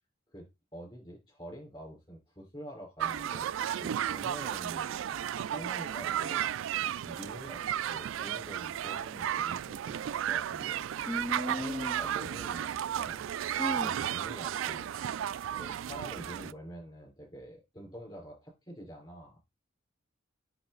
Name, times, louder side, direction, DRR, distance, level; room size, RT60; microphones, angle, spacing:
voice 1, 0.7-6.5 7.0-10.9 11.5-13.3 13.8-14.9 15.6-19.4, equal, 25° left, 4.4 m, -47 dB
sound 1, 3.0-16.5, right 10 dB, 85° right, 0.3 m, -34 dB
voice 2, 11.1-12.0 13.6-14.0, left 1 dB, ahead, 0.3 m, -35 dB
9.8 x 3.8 x 3.9 m
head